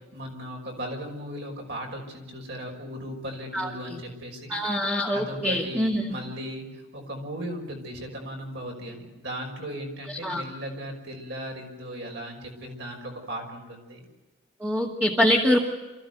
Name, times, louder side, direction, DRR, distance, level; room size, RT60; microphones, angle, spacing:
voice 1, 0.1-4.5 5.1-14.0, equal, 55° right, 1 dB, 5.8 m, -37 dB
voice 2, 3.5-4.0 4.5-6.0 10.1-10.4 14.6-15.6, equal, 10° right, -2 dB, 2.2 m, -24 dB
28.0 x 15.0 x 8.1 m, 1.1 s
head